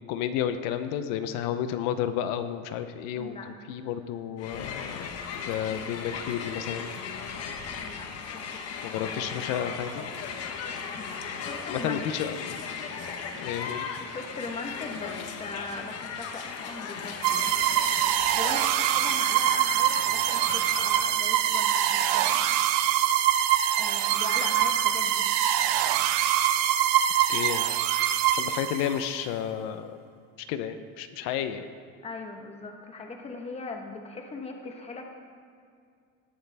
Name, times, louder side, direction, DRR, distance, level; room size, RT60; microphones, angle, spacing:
voice 1, 0.1-5.1 5.3-6.9 8.8-10.0 11.7-12.6 13.4-13.9 27.3-27.7 28.3-29.9 30.5-31.7, left 9 dB, 70° left, 9 dB, 0.8 m, -31 dB
voice 2, 3.2-3.5 7.8-9.6 11.0-12.2 14.0-17.6 18.1-22.9 23.8-25.2 32.0-35.0, left 3 dB, 15° left, 3 dB, 1.2 m, -39 dB
Crowd, 4.4-21.1, left 6 dB, 45° left, 1.3 m, -37 dB
sound 1, 17.2-29.1, right 11 dB, 85° right, 0.8 m, -24 dB
18.5 x 12.0 x 3.5 m, 2.3 s
cardioid pair, 165°, 35 cm